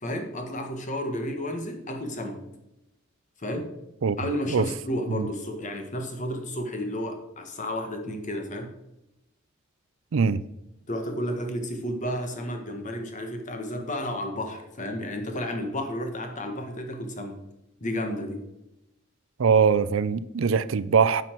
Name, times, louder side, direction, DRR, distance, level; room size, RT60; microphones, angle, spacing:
voice 1, 0.0-2.4 3.4-3.7 4.2-8.7 10.9-17.4 17.8-18.4, equal, 35° left, 1.4 m, -32 dB
voice 2, 10.1-10.4 19.4-21.2, right 6 dB, 65° right, 0.4 m, -22 dB
10.5 x 5.6 x 4.5 m
head